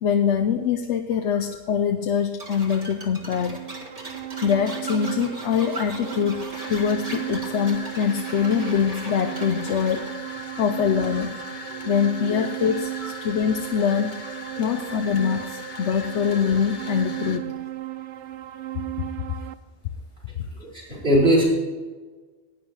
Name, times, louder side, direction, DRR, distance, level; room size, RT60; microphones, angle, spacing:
voice 1, 0.0-3.6 4.4-10.1 10.6-11.4 11.9-14.2 14.6-17.5 20.4-20.5, left 7 dB, 80° left, 7 dB, 0.9 m, -24 dB
sound 1, 2.4-10.1, right 1 dB, 30° right, 1.6 m, -39 dB
sound 2, 3.2-19.5, right 15 dB, 80° right, 0.9 m, -35 dB
sound 3, 4.2-4.7 5.4-17.4, left 3 dB, 45° left, 1.0 m, -40 dB
voice 2, 14.6-14.9 20.5-21.4, right 1 dB, 55° right, -6 dB, 4.2 m, -22 dB
11.5 x 9.3 x 4.7 m, 1.3 s
omnidirectional pair, 1.2 m